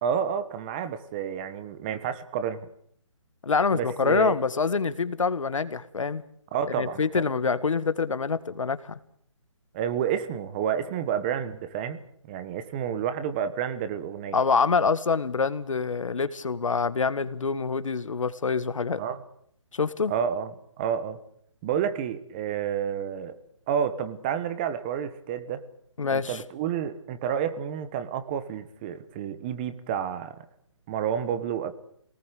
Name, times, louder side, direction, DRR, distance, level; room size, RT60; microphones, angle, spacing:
voice 1, 0.0-2.7 3.7-4.4 6.5-7.2 9.7-14.4 18.9-19.2 20.1-20.5 20.8-21.2 21.6-23.3 23.7-25.6 26.1-30.4 30.9-31.7, right 8 dB, 20° right, 12 dB, 1.2 m, -30 dB
voice 2, 3.4-6.2 6.7-9.0 14.3-19.0 19.7-20.1 26.0-26.4, left 5 dB, 75° left, 14 dB, 1.8 m, -26 dB
27.0 x 19.0 x 8.3 m, 0.66 s
hypercardioid pair, 165°, 17 cm